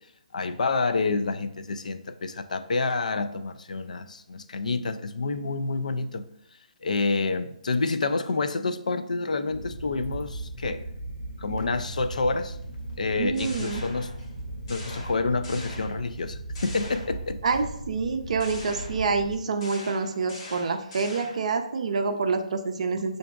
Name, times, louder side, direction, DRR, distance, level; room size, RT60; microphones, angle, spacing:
voice 1, 0.3-6.3 6.8-10.8 11.4-12.6 13.0-14.1 14.7-17.4, left 3 dB, 75° left, 0.3 m, -28 dB
sound 1, 9.5-19.4, right 1 dB, 90° left, 0.8 m, -38 dB
sound 2, 13.1-14.4 14.7-16.2 16.6-17.6 18.4-21.6, left 2 dB, 40° left, 0.9 m, -43 dB
voice 2, 13.2-13.8 17.4-23.2, right 4 dB, 60° right, 0.4 m, -27 dB
5.7 x 2.6 x 2.3 m
figure-of-eight pair, 150°, 4 cm